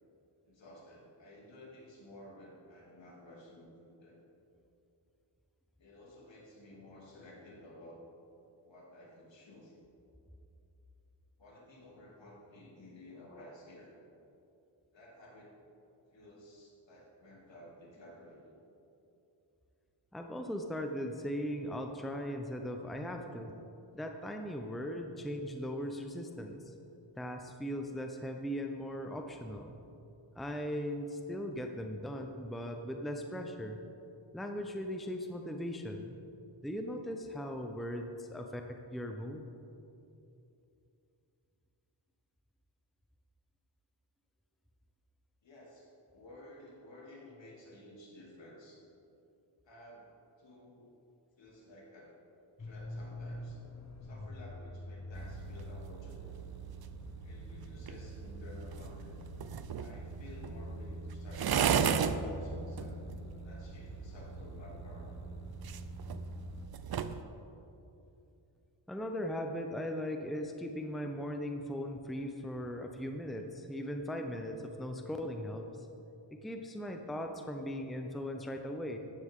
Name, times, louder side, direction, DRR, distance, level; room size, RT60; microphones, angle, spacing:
voice 1, 0.4-4.2 5.8-8.1 8.6-9.8 11.4-13.9 14.9-15.6 16.1-18.6 45.4-48.8 49.6-50.1 50.4-50.9 51.4-52.2 52.6-53.6 54.0-56.4 57.2-59.2 59.8-62.9 63.4-65.3, left 1 dB, 65° left, -4 dB, 3.0 m, -53 dB
voice 2, 20.1-23.5 23.9-26.7 27.2-29.7 30.4-33.8 34.3-36.1 36.6-39.5 68.9-75.9 76.4-79.0, equal, ahead, 4 dB, 0.8 m, -39 dB
sound 1, 52.6-66.7, left 1 dB, 35° left, 1.2 m, -46 dB
sound 2, 55.1-67.2, right 7 dB, 50° right, 0.6 m, -37 dB
14.5 x 9.7 x 3.8 m, 2.8 s
cardioid pair, 75°, 49 cm